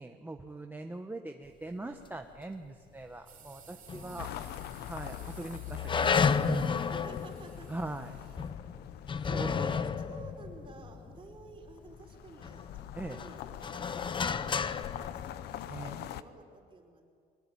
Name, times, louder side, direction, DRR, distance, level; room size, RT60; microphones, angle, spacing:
voice 1, 0.0-4.3 4.9-6.1 6.4-6.9 7.7-8.2 9.3-9.8 12.9-13.2 15.7-16.0, right 2 dB, 10° right, 4 dB, 1.1 m, -40 dB
sound 1, 3.3-8.5, right 8 dB, 55° right, 4.1 m, -56 dB
voice 2, 3.8-4.4 5.1-5.6 6.9-7.7 8.6-15.2 15.5-17.0, right 3 dB, 30° right, 1 dB, 5.1 m, -52 dB
sound 2, 3.9-4.7 5.0-5.1 5.8-11.9 12.4-15.8, left 6 dB, 30° left, 0.8 m, -32 dB
sound 3, 4.2-10.7 11.8-16.2, left 12 dB, 80° left, 0.8 m, -43 dB
23.5 x 20.5 x 8.7 m, 2.2 s
cardioid pair, 110°, 17 cm